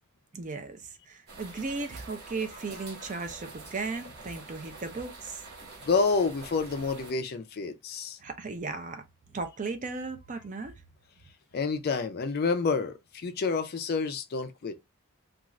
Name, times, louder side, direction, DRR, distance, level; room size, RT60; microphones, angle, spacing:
voice 1, 0.3-5.4 8.2-10.8, right 3 dB, 35° right, 0.5 m, -36 dB
sound 1, 1.3-7.1, right 3 dB, 50° right, 1.1 m, -46 dB
voice 2, 5.8-8.2 11.5-14.8, left 4 dB, 45° left, 0.4 m, -29 dB
2.4 x 2.4 x 3.0 m
head